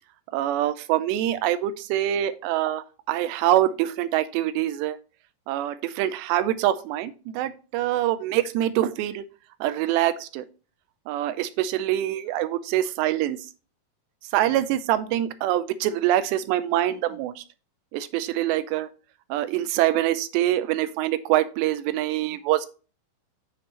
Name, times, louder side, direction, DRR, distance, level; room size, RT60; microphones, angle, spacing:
voice 1, 0.3-5.0 5.5-9.2 9.6-10.5 11.1-13.4 14.3-17.4 17.9-18.9 19.3-22.7, right 13 dB, 85° right, 12 dB, 2.8 m, -25 dB
8.7 x 6.0 x 3.1 m, 0.35 s
omnidirectional pair, 4.9 m